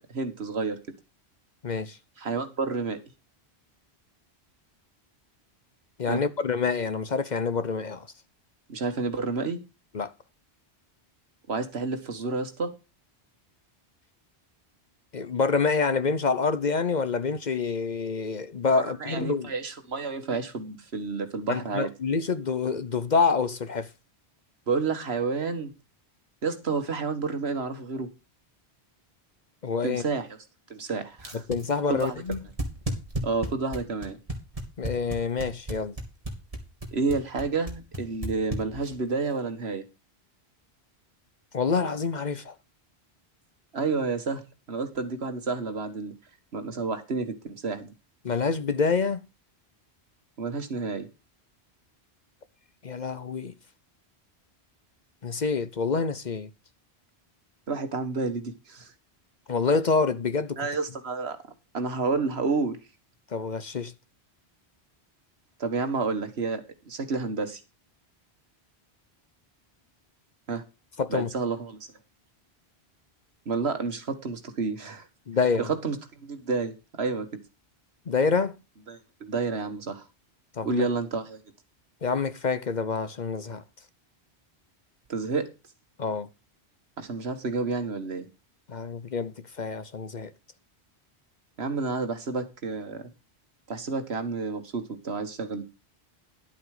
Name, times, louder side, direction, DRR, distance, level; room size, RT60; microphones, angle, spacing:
voice 1, 0.1-0.8 2.2-3.0 6.1-6.2 8.7-9.6 11.5-12.7 19.0-21.9 24.7-25.7 26.4-28.1 29.8-30.3 30.7-31.4 31.9-32.2 33.2-34.2 36.9-39.9 43.7-46.1 46.5-47.9 50.4-51.1 57.7-58.9 60.6-61.4 61.7-62.8 65.6-67.6 70.5-70.6 71.1-71.8 73.5-75.1 75.6-77.3 78.9-80.0 80.6-81.4 85.1-85.5 87.0-88.3 91.6-93.1 93.7-95.6, right 4 dB, 70° right, 1.8 m, -30 dB
voice 2, 1.6-2.0 6.0-8.1 9.9-10.1 15.1-19.5 21.5-23.9 29.6-30.0 31.5-32.4 34.8-36.0 41.5-42.5 48.2-49.2 52.8-53.5 55.2-56.5 59.5-60.7 63.3-63.9 71.0-71.3 75.3-75.7 78.1-78.6 80.6-80.9 82.0-83.6 86.0-86.3 88.7-90.3, left 4 dB, 45° left, 0.8 m, -27 dB
sound 1, 31.2-39.1, right 1 dB, 35° right, 2.6 m, -33 dB
11.5 x 8.1 x 4.9 m
omnidirectional pair, 1.1 m